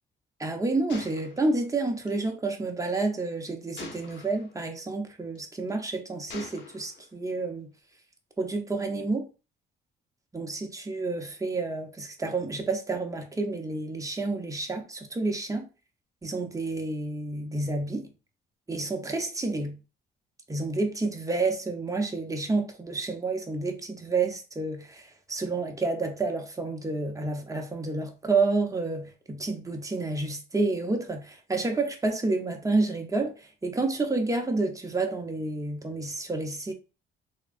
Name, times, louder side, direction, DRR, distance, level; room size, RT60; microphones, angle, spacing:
voice 1, 0.4-7.7 8.4-9.3 10.3-15.7 16.2-18.1 18.7-19.8 20.5-36.7, right 3 dB, 15° right, 0.7 m, -29 dB
Gunshot gunfire, 0.9-2.2 3.8-4.5 5.4-5.7 6.3-7.1, left 4 dB, 65° left, 0.8 m, -44 dB
3.5 x 2.1 x 2.4 m
cardioid pair, 90°, 20 cm